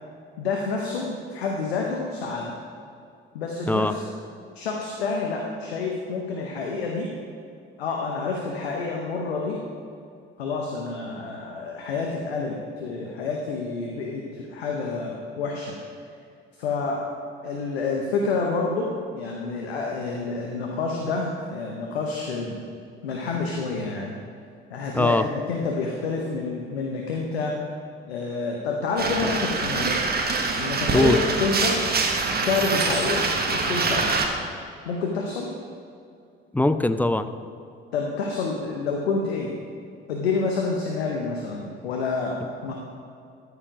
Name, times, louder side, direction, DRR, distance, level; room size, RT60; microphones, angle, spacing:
voice 1, 0.4-2.6 3.3-4.1 4.5-7.1 7.8-9.6 10.4-15.8 16.6-17.0 17.4-22.6 23.0-24.2 24.7-27.5 28.1-30.1 30.6-31.8 32.4-34.3 34.8-35.5 37.9-39.5 40.1-42.7, left 4 dB, 80° left, 0 dB, 0.8 m, -28 dB
voice 2, 24.9-25.2 30.9-31.2 36.5-37.3, left 1 dB, 5° left, 11 dB, 0.4 m, -21 dB
sound 1, 29.0-34.3, right 4 dB, 30° right, 1.3 m, -25 dB
13.0 x 5.0 x 4.9 m, 2.4 s
figure-of-eight pair, 50°, 30 cm